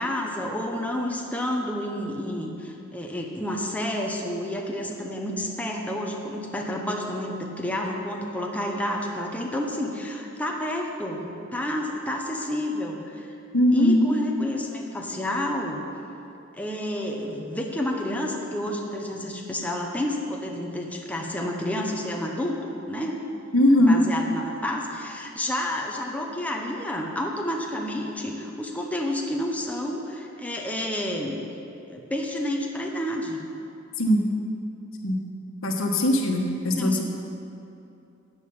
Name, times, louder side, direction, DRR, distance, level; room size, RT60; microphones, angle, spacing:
voice 1, 0.0-13.3 13.7-15.8 16.6-23.2 23.8-31.4 31.9-33.4 36.7-37.0, left 1 dB, 5° left, 0 dB, 1.0 m, -30 dB
voice 2, 13.5-14.1 23.5-24.0 34.0-34.2 35.0-35.2 35.6-37.0, left 1 dB, 80° left, 2 dB, 1.4 m, -20 dB
14.0 x 8.4 x 5.6 m, 2.7 s
head